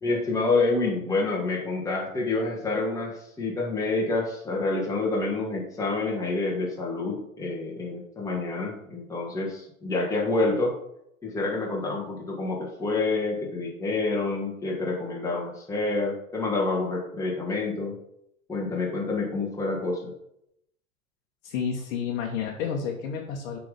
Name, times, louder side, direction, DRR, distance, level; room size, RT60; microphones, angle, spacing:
voice 1, 0.0-10.7 11.2-17.9 18.5-20.1, left 3 dB, 10° left, -3 dB, 1.7 m, -28 dB
voice 2, 21.4-23.6, left 7 dB, 55° left, 0 dB, 1.3 m, -30 dB
7.5 x 3.8 x 5.1 m, 0.78 s
hypercardioid pair, 95°, 42 cm